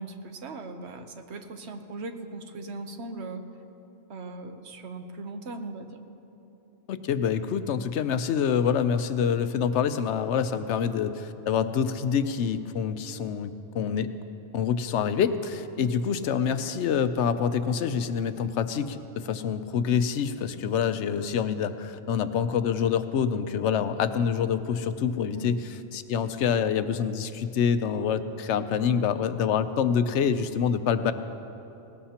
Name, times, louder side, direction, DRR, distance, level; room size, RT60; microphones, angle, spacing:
voice 1, 0.0-3.5 4.1-6.0 15.8-15.9 25.3-25.6, right 2 dB, 75° right, 6 dB, 1.1 m, -39 dB
voice 2, 6.9-14.1 14.5-25.5 25.9-31.1, left 7 dB, 90° left, 11 dB, 0.9 m, -26 dB
18.5 x 18.5 x 2.9 m, 3.0 s
omnidirectional pair, 1.1 m